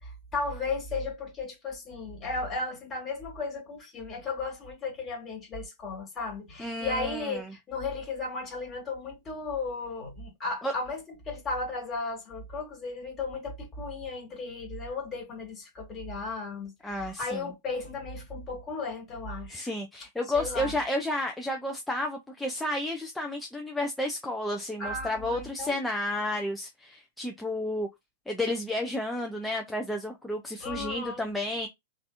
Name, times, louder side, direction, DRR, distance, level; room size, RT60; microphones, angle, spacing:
voice 1, 0.0-19.7 20.3-20.7 24.8-25.8 30.6-31.2, left 3 dB, 25° left, 1.6 m, -35 dB
voice 2, 6.6-7.5 10.6-10.7 16.8-17.5 19.5-27.9 28.3-31.7, left 1 dB, 5° left, 0.4 m, -31 dB
3.3 x 2.5 x 2.4 m
figure-of-eight pair, 105°, 0 cm